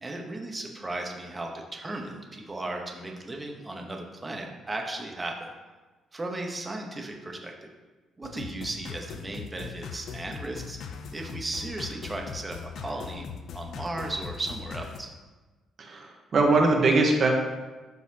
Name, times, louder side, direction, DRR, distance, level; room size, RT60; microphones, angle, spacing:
voice 1, 0.0-5.5 6.1-7.7 8.2-10.8 11.1-13.2 13.5-15.1, right 2 dB, 20° right, 2 dB, 1.0 m, -36 dB
sound 1, 8.2-15.0, left 6 dB, 65° left, 0.5 m, -40 dB
voice 2, 15.8-17.3, right 3 dB, 45° right, 2 dB, 1.1 m, -22 dB
12.0 x 4.1 x 2.9 m, 1.2 s
cardioid pair, 125°, 0 cm